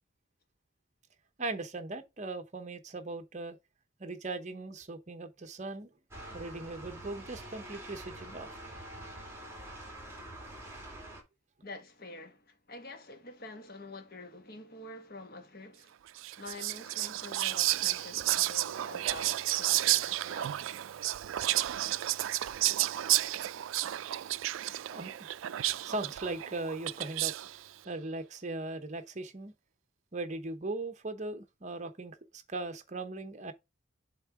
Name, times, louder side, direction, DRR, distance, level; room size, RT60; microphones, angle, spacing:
voice 1, 1.4-3.6 4.0-5.9 6.3-8.5 24.9-25.3 25.8-27.3 27.8-29.5 30.1-33.5, right 2 dB, 35° right, 0.9 m, -39 dB
sound 1, 6.1-11.2, right 1 dB, 15° right, 2.2 m, -46 dB
voice 2, 11.6-16.0 16.4-20.8, left 2 dB, 45° left, 1.4 m, -47 dB
Whispering, 16.2-27.6, right 15 dB, 75° right, 0.3 m, -31 dB
7.4 x 3.6 x 4.7 m
head